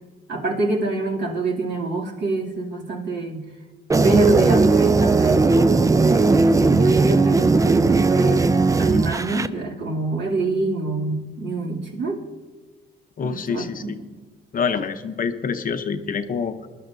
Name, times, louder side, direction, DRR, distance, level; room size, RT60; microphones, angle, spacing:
voice 1, 0.3-3.5 3.9-8.5 8.8-12.2 13.2-13.9, right 2 dB, 60° right, -3 dB, 2.7 m, -26 dB
sound 1, 3.9-9.5, right 3 dB, 15° right, 0.4 m, -17 dB
voice 2, 13.2-14.0 14.5-16.7, left 6 dB, 45° left, 8 dB, 0.8 m, -26 dB
21.5 x 11.5 x 2.7 m, 1.3 s
cardioid pair, 90°, 20 cm